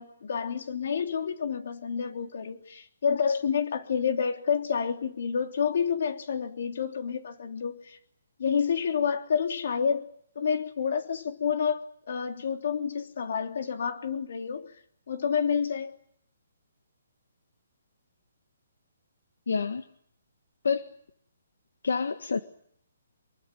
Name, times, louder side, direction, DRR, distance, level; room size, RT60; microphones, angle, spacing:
voice 1, 0.0-8.0 8.4-10.1 10.3-11.8 12.1-14.7 15.1-16.0, left 6 dB, 55° left, 6 dB, 3.3 m, -29 dB
voice 2, 19.5-19.8 20.6-20.9 21.8-22.4, left 5 dB, 80° left, 9 dB, 1.7 m, -27 dB
25.0 x 23.5 x 9.2 m, 0.67 s
hypercardioid pair, 170°, 0 cm